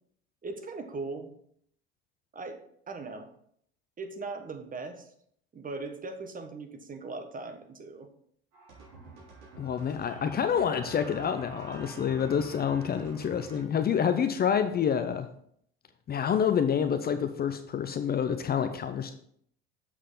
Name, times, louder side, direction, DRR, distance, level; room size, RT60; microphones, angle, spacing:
voice 1, 0.4-1.3 2.3-3.3 4.0-5.1 5.5-8.1, right 3 dB, 25° right, 6 dB, 1.2 m, -39 dB
sound 1, 8.5-13.6, right 2 dB, 60° right, 3.3 m, -47 dB
voice 2, 9.6-15.3 16.1-19.1, left 7 dB, 30° left, 9 dB, 0.6 m, -28 dB
7.4 x 6.4 x 3.8 m, 0.67 s
hypercardioid pair, 70°, 31 cm